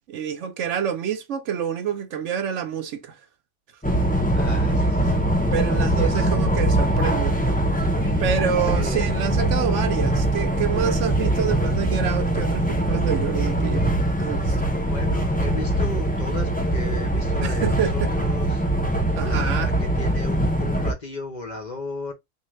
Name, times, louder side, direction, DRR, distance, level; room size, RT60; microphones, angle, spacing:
voice 1, 0.1-3.2 5.5-7.6 8.2-14.7 17.4-18.1 19.1-19.7, right 8 dB, 70° right, 0.9 m, -27 dB
sound 1, 3.8-20.9, right 1 dB, 10° left, 0.5 m, -22 dB
voice 2, 4.3-5.2 5.9-6.3 8.7-9.1 14.8-18.6 19.2-22.1, left 3 dB, 40° left, 0.8 m, -35 dB
3.7 x 2.7 x 3.1 m
omnidirectional pair, 1.4 m